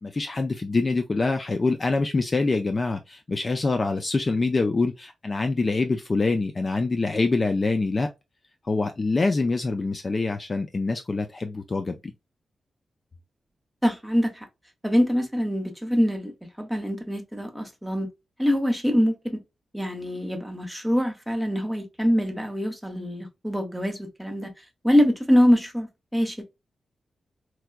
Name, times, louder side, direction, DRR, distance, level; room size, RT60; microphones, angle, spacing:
voice 1, 0.0-8.1 8.6-12.1, left 3 dB, 30° left, 0.4 m, -25 dB
voice 2, 13.8-14.5 14.8-16.3 16.6-18.1 18.4-19.4 19.7-24.5 24.8-26.4, equal, ahead, 1.0 m, -24 dB
4.5 x 2.2 x 2.3 m
wide cardioid pair, 125°, 0 cm